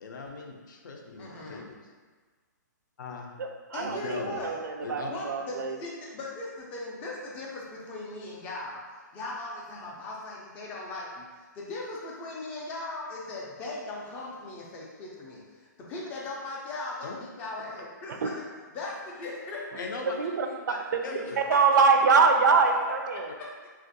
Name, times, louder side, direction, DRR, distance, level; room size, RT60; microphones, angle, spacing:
voice 1, 0.0-1.7 3.0-3.3 3.8-4.4 4.8-5.1 17.0-17.2 19.8-20.1 20.7-21.4, left 4 dB, 75° left, 1 dB, 0.5 m, -39 dB
voice 2, 1.2-1.7 3.7-4.6 5.1-18.4 18.7-19.9 20.2-20.6 21.0-21.8 23.1-23.7, left 2 dB, 15° left, -3 dB, 0.4 m, -39 dB
voice 3, 3.4-5.8 18.2-18.3 20.2-20.5 21.5-23.3, right 5 dB, 70° right, 4 dB, 0.4 m, -23 dB
3.5 x 2.4 x 2.6 m, 1.4 s
hypercardioid pair, 165°, 10 cm